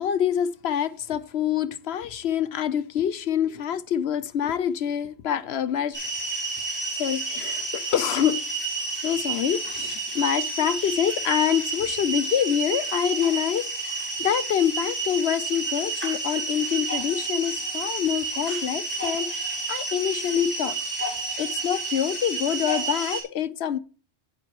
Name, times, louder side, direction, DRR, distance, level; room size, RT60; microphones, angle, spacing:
voice 1, 0.0-6.0 6.9-8.4 9.0-20.8 21.1-23.8, left 9 dB, 80° left, 1.0 m, -26 dB
sound 1, 5.9-23.2, right 3 dB, 10° right, 5.9 m, -30 dB
12.5 x 9.7 x 3.0 m
omnidirectional pair, 1.0 m